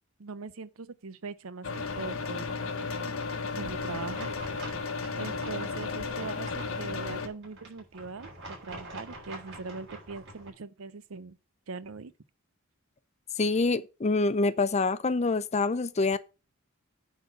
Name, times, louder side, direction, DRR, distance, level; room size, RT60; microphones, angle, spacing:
voice 1, 0.2-2.5 3.5-4.3 5.2-11.4 11.7-12.1, right 4 dB, 75° right, 0.7 m, -41 dB
sound 1, 1.6-7.3, left 4 dB, 75° left, 1.3 m, -34 dB
sound 2, 3.9-10.5, right 2 dB, 60° right, 4.3 m, -46 dB
voice 2, 13.4-16.2, left 3 dB, 30° left, 0.6 m, -26 dB
9.5 x 4.0 x 6.9 m
head